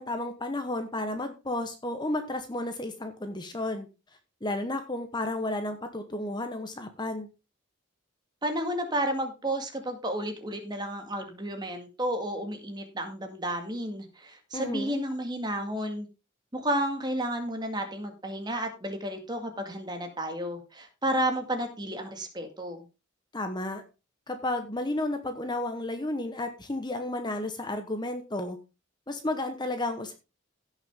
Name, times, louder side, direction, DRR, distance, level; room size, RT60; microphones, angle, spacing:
voice 1, 0.0-3.9 4.4-7.3 14.5-15.0 23.3-23.8 24.3-28.6 29.1-30.1, left 2 dB, 20° left, 7 dB, 1.1 m, -32 dB
voice 2, 8.4-16.1 16.5-22.8, right 1 dB, 20° right, 5 dB, 2.0 m, -32 dB
16.5 x 6.4 x 3.7 m, 0.29 s
head